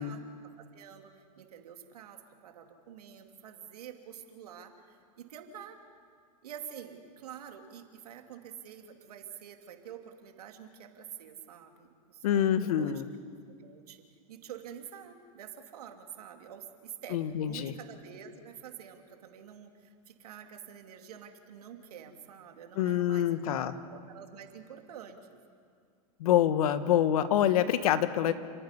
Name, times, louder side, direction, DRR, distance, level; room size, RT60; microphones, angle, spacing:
voice 1, 0.0-5.8 6.4-13.0 13.6-23.6 23.9-25.3, right 8 dB, 80° right, 4 dB, 2.7 m, -48 dB
voice 2, 12.2-13.1 17.1-17.7 22.8-23.7 26.2-28.3, left 10 dB, 70° left, 12 dB, 1.3 m, -26 dB
29.5 x 11.0 x 9.9 m, 2.2 s
hypercardioid pair, 130°, 20 cm